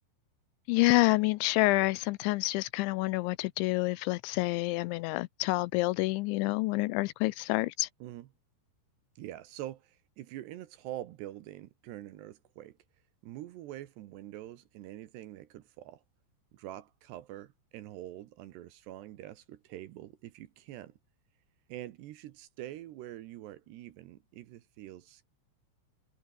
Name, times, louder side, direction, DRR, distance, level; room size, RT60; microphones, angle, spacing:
voice 1, 0.7-7.9, left 21 dB, 85° left, 2.8 m, -28 dB
voice 2, 9.2-12.8 13.2-16.0 16.5-21.0 21.7-25.2, right 14 dB, 70° right, 2.9 m, -45 dB
omnidirectional pair, 5.6 m